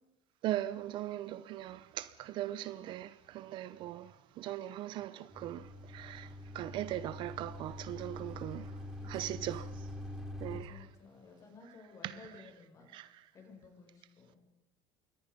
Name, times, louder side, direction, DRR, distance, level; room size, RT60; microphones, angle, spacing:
voice 1, 0.4-8.8 9.0-9.7 10.4-10.7 12.0-12.2 12.9-13.2, right 13 dB, 55° right, 0.8 m, -39 dB
sound 1, 5.3-10.6, left 1 dB, 5° right, 3.8 m, -45 dB
voice 2, 10.4-14.4, left 4 dB, 35° left, 6.1 m, -55 dB
28.0 x 23.0 x 5.3 m
cardioid pair, 145°, 10 cm